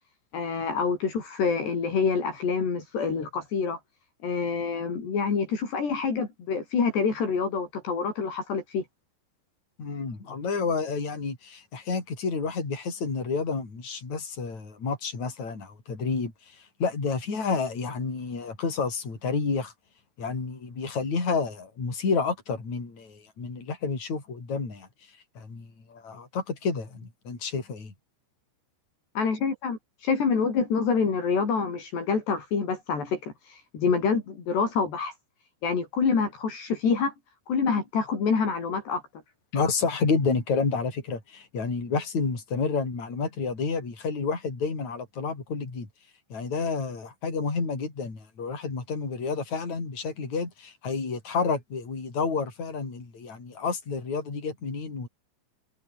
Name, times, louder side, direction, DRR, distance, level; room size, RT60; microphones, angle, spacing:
voice 1, 0.3-3.8 4.2-8.8 29.2-35.1 35.6-37.1 37.5-39.0, left 5 dB, 60° left, 7.5 m, -27 dB
voice 2, 9.8-16.3 16.8-19.7 20.2-24.9 25.4-27.9 39.5-45.9 46.3-55.1, left 4 dB, 35° left, 7.6 m, -30 dB
omnidirectional pair, 5.4 m